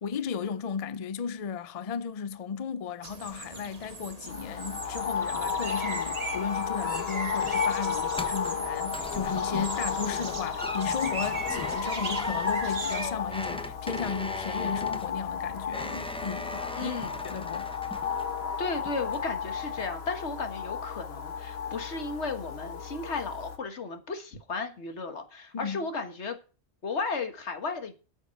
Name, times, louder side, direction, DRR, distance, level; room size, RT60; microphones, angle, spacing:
voice 1, 0.0-16.9 17.2-17.7 25.5-25.8, left 6 dB, 40° left, 0.6 m, -35 dB
sound 1, 3.0-13.1, right 4 dB, 35° right, 1.2 m, -39 dB
sound 2, 4.3-23.6, left 7 dB, 70° left, 1.4 m, -33 dB
sound 3, 7.4-18.5 18.9-19.4 19.8-19.9, left 1 dB, 5° left, 0.7 m, -39 dB
voice 2, 16.8-17.1 18.6-26.4 26.8-27.9, left 4 dB, 90° left, 1.8 m, -34 dB
9.0 x 7.3 x 7.6 m
omnidirectional pair, 1.1 m